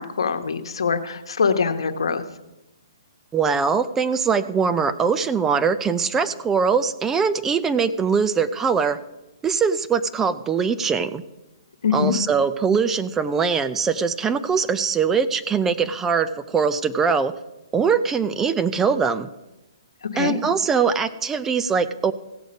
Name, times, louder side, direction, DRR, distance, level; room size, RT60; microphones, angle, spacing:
voice 1, 0.0-2.2 11.8-12.1 20.1-20.4, left 6 dB, 80° left, 8 dB, 1.1 m, -23 dB
voice 2, 3.3-9.0 9.4-11.2 11.9-17.3 17.7-19.3 20.2-22.1, right 6 dB, 10° right, 12 dB, 0.4 m, -22 dB
16.5 x 6.3 x 5.2 m, 0.96 s
hypercardioid pair, 150°, 3 cm